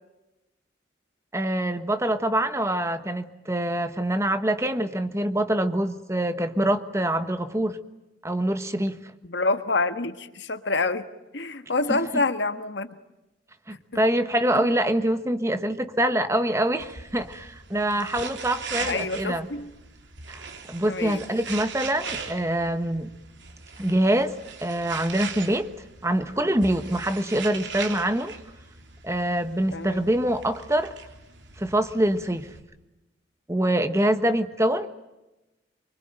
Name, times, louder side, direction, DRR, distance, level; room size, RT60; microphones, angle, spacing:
voice 1, 1.3-7.8 8.2-9.0 11.9-12.2 13.7-19.5 20.3-23.1 23.8-24.3 24.6-25.7 26.0-28.3 29.0-30.9 31.6-32.5 33.5-34.9, right 1 dB, 15° right, 10 dB, 1.3 m, -25 dB
voice 2, 9.2-11.0 11.3-12.9 14.5-14.6 18.8-19.7 20.9-21.2 29.7-30.0, left 3 dB, 70° left, 10 dB, 1.5 m, -27 dB
sound 1, 16.8-32.6, right 5 dB, 75° right, 3.1 m, -40 dB
25.0 x 24.0 x 9.0 m, 0.99 s
head